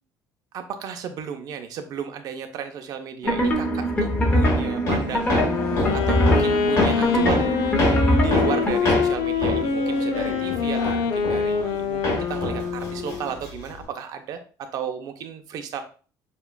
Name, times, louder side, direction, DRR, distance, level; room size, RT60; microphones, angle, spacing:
voice 1, 0.5-7.5 8.1-15.8, right 7 dB, 55° right, 7 dB, 0.5 m, -34 dB
sound 1, 3.2-8.8, equal, 20° left, 0.8 m, -23 dB
Hammer, 4.4-11.8 12.0-13.8, left 1 dB, 45° left, 1.5 m, -26 dB
Wind instrument woodwind instrument, 5.2-13.3, left 6 dB, 80° left, 0.6 m, -25 dB
6.9 x 2.4 x 2.3 m, 0.40 s
cardioid pair, 140°, 8 cm